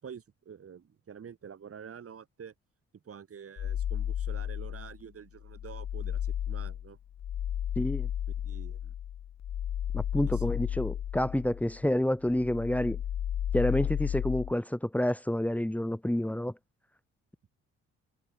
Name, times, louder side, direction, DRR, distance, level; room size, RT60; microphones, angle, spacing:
voice 1, 0.0-2.5 3.0-7.0 8.4-8.9 10.2-10.5, right 7 dB, 50° right, 6.0 m, -47 dB
sound 1, 3.6-5.0 5.4-11.9 12.2-14.5, left 10 dB, 60° left, 2.7 m, -33 dB
voice 2, 7.8-8.1 9.9-13.0 13.5-16.5, left 1 dB, 5° left, 3.1 m, -29 dB
cardioid pair, 90°, 30 cm